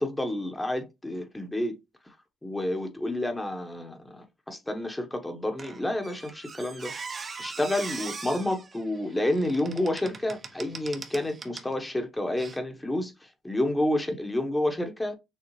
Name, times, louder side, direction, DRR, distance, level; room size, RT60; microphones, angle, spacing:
voice 1, 0.0-1.8 2.4-6.9 7.4-15.1, left 1 dB, 15° left, 1.0 m, -29 dB
Squeak, 5.6-11.7 12.4-12.6, right 4 dB, 40° right, 0.9 m, -41 dB
6.5 x 2.3 x 3.1 m
cardioid pair, 90°, 0 cm